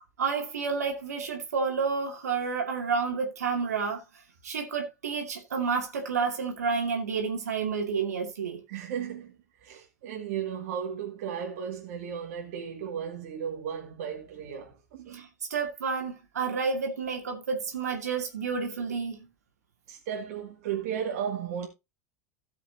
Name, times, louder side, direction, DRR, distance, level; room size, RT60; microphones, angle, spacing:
voice 1, 0.2-4.0 4.4-8.6 15.1-19.3, right 5 dB, 75° right, 2.5 m, -30 dB
voice 2, 8.7-15.3 19.9-21.7, right 8 dB, 60° right, 2.2 m, -35 dB
17.0 x 5.8 x 2.7 m
figure-of-eight pair, 80°, 9 cm